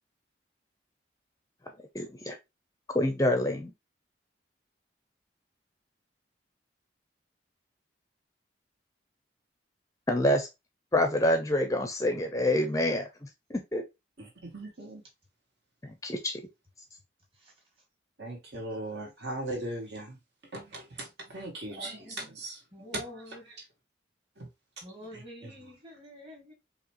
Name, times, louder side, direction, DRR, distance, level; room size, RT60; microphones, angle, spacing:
voice 1, 1.9-2.4 2.9-3.7 10.1-10.5 10.9-13.1 13.5-13.8 15.8-16.4, left 1 dB, 15° left, 0.6 m, -27 dB
voice 2, 14.2-15.0 18.2-20.2 20.5-23.4 24.4-24.5 25.1-25.5, right 1 dB, 65° right, 2.1 m, -39 dB
voice 3, 21.7-22.3 22.7-23.6 24.8-26.5, equal, 30° right, 2.0 m, -48 dB
4.9 x 3.1 x 3.0 m
head